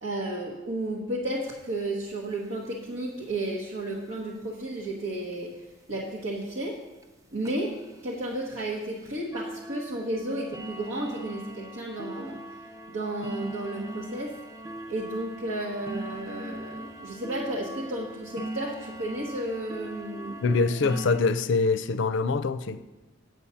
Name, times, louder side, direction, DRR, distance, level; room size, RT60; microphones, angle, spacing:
voice 1, 0.0-6.8 7.3-12.4 12.9-14.4 14.9-20.4, right 1 dB, 75° right, -4 dB, 1.2 m, -33 dB
sound 1, 1.5-1.6 1.8-1.9 2.1-2.3 2.6-3.0 3.7-3.8 4.4-4.5 4.8-4.9 5.3-5.4 5.9-6.0 6.4-6.6 7.0-7.1 7.4-21.2, right 1 dB, 15° right, 0.6 m, -41 dB
voice 2, 20.4-22.9, left 4 dB, 65° left, 13 dB, 0.5 m, -24 dB
8.5 x 8.0 x 5.6 m, 1.1 s
head